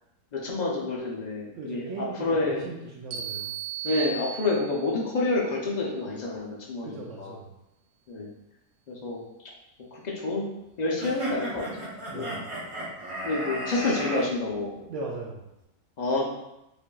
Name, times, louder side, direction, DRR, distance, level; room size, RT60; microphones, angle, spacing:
voice 1, 0.3-2.7 3.8-7.3 8.1-8.3 8.9-9.2 9.9-10.5 10.8-12.3 13.2-14.8 16.0-16.3, left 2 dB, 65° left, -4 dB, 0.4 m, -28 dB
voice 2, 1.6-3.5 6.8-7.5 12.1-12.5 14.9-15.5, right 3 dB, 65° right, -2 dB, 0.8 m, -38 dB
sound 1, 3.1-5.0, right 7 dB, 85° right, 1.1 m, -35 dB
sound 2, 11.0-14.2, right 1 dB, 30° right, 0.6 m, -34 dB
5.0 x 2.6 x 2.2 m, 0.90 s
omnidirectional pair, 1.6 m